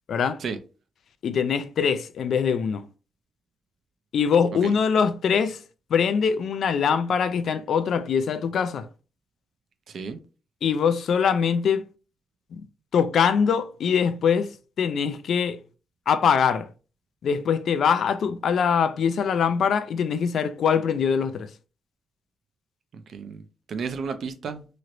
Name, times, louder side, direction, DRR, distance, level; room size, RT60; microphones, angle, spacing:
voice 1, 0.1-0.4 1.2-2.8 4.1-5.6 5.9-8.9 10.6-11.8 12.5-12.6 12.9-14.5 14.8-15.6 16.1-16.7 17.2-21.5, left 7 dB, 60° left, 0.3 m, -23 dB
voice 2, 9.9-10.2 22.9-24.7, right 5 dB, 55° right, 0.5 m, -33 dB
3.0 x 2.9 x 2.5 m
wide cardioid pair, 150°, 0 cm